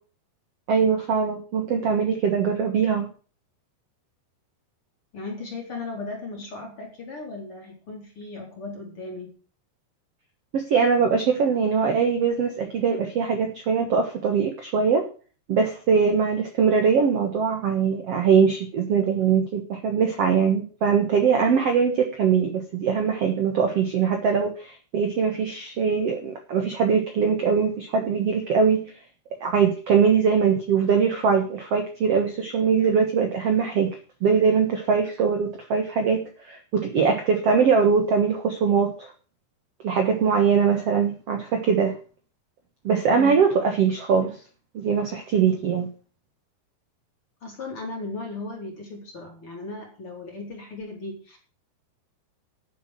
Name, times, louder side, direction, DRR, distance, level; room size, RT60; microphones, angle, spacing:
voice 1, 0.7-3.1 10.5-15.0 15.5-28.9 29.4-39.1 39.8-41.9 42.8-44.4 44.7-45.9, right 6 dB, 65° right, 5 dB, 1.5 m, -22 dB
voice 2, 5.1-9.3 43.1-43.4 47.4-51.4, left 3 dB, 30° left, 0 dB, 4.4 m, -36 dB
10.5 x 7.6 x 7.7 m, 0.39 s
omnidirectional pair, 5.0 m